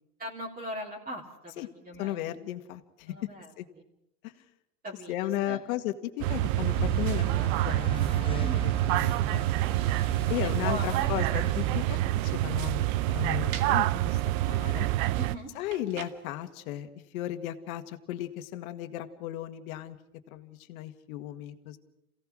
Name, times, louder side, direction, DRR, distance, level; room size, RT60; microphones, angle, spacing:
voice 1, 0.2-2.3 3.1-3.8 4.8-5.6 8.4-8.8 10.3-11.1 15.1-15.5, equal, 20° right, -2 dB, 3.4 m, -40 dB
voice 2, 2.0-3.1 3.6-3.7 4.2-4.3 5.1-9.4 10.3-14.2 14.5-14.9 15.6-16.9 17.1-20.0 20.3-21.8, left 13 dB, 65° left, 8 dB, 2.0 m, -35 dB
sound 1, 6.2-15.4, right 16 dB, 60° right, 0.8 m, -27 dB
sound 2, 6.7-11.9, left 5 dB, 10° left, 0.9 m, -41 dB
sound 3, 11.5-16.5, right 8 dB, 75° right, 2.1 m, -48 dB
28.0 x 17.0 x 6.2 m, 0.84 s
hypercardioid pair, 100°, 45 cm